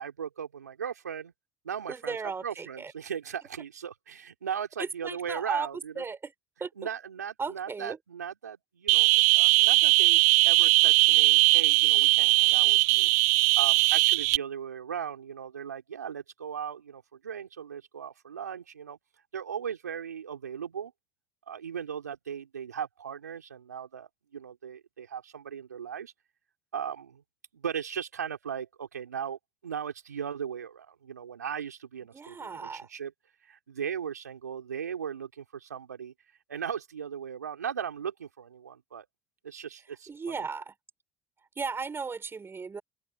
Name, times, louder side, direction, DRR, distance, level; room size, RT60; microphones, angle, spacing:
voice 1, 0.0-1.3 1.6-6.0 6.8-13.1 13.6-19.0 19.3-20.9 21.5-26.1 26.7-27.2 27.5-33.1 33.4-36.1 36.5-39.1 39.4-40.5, right 8 dB, 90° right, 3.5 m, -38 dB
voice 2, 1.9-2.9 4.8-5.7 5.9-6.3 6.6-6.7 7.4-8.0 32.1-32.9 40.1-40.7 41.6-42.8, right 5 dB, 25° right, 5.0 m, -35 dB
sound 1, 8.9-14.4, right 25 dB, 70° right, 0.4 m, -20 dB
open air
hypercardioid pair, 65°, 9 cm